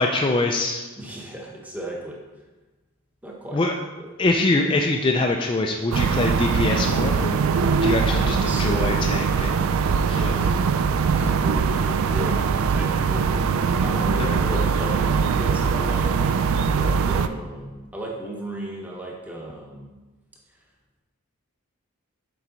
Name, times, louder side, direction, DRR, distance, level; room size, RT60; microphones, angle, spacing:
voice 1, 0.0-0.9 3.5-3.8 4.2-7.4 7.8-9.6 10.1-10.5 14.3-14.4, left 2 dB, 20° left, 2 dB, 0.3 m, -24 dB
voice 2, 1.0-2.2 3.2-3.6 4.0-4.1 8.1-9.2 11.1-12.4 12.7-13.4 13.8-16.2 16.8-19.9, right 1 dB, 5° right, -2 dB, 0.9 m, -35 dB
sound 1, 5.9-17.3, right 5 dB, 65° right, 0.3 m, -22 dB
7.1 x 4.6 x 3.9 m, 1.2 s
head